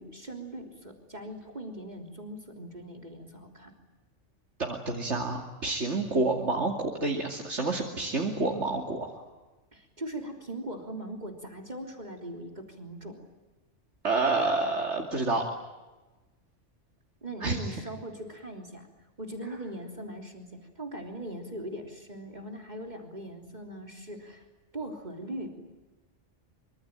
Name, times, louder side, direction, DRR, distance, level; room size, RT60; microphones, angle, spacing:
voice 1, 0.0-3.7 9.7-13.2 17.2-24.5 24.7-25.6, right 1 dB, 35° right, 3 dB, 3.6 m, -40 dB
voice 2, 4.6-9.2 14.0-15.4 17.4-17.6, right 3 dB, 70° right, 1 dB, 3.0 m, -28 dB
25.5 x 25.5 x 9.0 m, 1.2 s
omnidirectional pair, 1.2 m